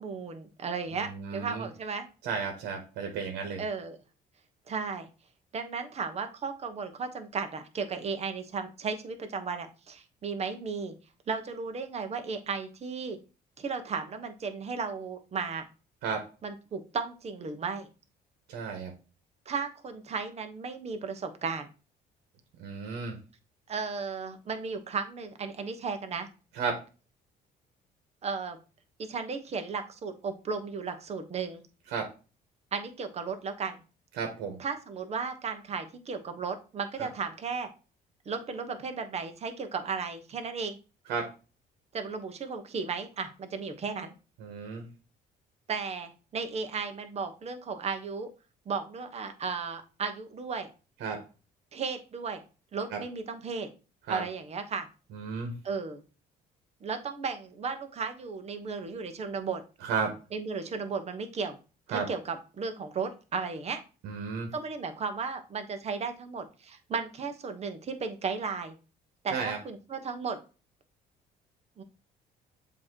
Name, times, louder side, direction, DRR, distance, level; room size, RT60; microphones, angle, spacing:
voice 1, 0.0-2.1 3.6-4.0 4.7-5.1 5.5-10.9 11.3-13.2 13.6-15.7 16.4-17.9 19.5-21.7 23.7-26.3 28.2-28.6 29.1-31.6 32.7-33.8 34.6-37.7 38.2-40.8 41.9-44.1 45.7-48.3 48.6-50.7 51.7-52.4 52.7-53.7 54.1-54.9 55.6-56.0 56.8-59.6 60.3-61.6 61.9-63.8 64.5-68.7 69.2-70.4 71.8-71.9, right 5 dB, 40° right, 7 dB, 1.1 m, -35 dB
voice 2, 0.9-1.7 2.2-3.6 16.0-16.3 18.5-18.9 22.6-23.2 26.5-26.8 31.9-32.1 34.1-34.6 37.0-37.1 41.1-41.3 44.4-44.9 51.0-51.2 52.9-53.0 54.1-54.2 55.1-55.5 59.8-60.1 61.9-62.1 64.0-64.5 69.3-69.6, right 5 dB, 80° right, 3 dB, 1.3 m, -33 dB
7.3 x 3.0 x 4.5 m, 0.33 s
cardioid pair, 110°, 17 cm